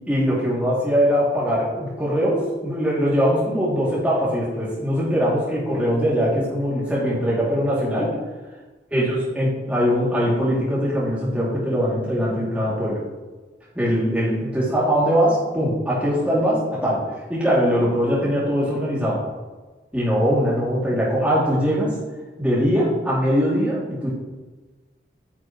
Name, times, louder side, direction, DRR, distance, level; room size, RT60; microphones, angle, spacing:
voice 1, 0.1-8.1 8.9-13.0 13.7-17.0 17.3-19.2 19.9-22.0 22.4-24.1, equal, 10° right, -7 dB, 2.5 m, -21 dB
9.6 x 6.8 x 3.1 m, 1.3 s
head